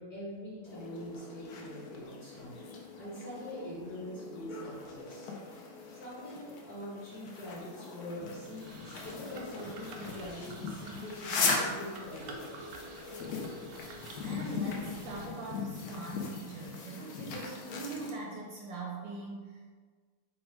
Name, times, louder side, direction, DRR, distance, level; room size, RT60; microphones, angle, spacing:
voice 1, 0.0-5.3 5.9-8.7 9.0-12.6, equal, 50° left, -8 dB, 1.7 m, -43 dB
sound 1, 0.7-18.1, left 4 dB, 75° left, 0.8 m, -39 dB
sound 2, 8.5-15.3, right 3 dB, 90° right, 1.5 m, -50 dB
voice 2, 14.2-19.7, right 3 dB, 75° right, -2 dB, 1.1 m, -42 dB
4.2 x 2.2 x 4.4 m, 1.5 s
omnidirectional pair, 2.4 m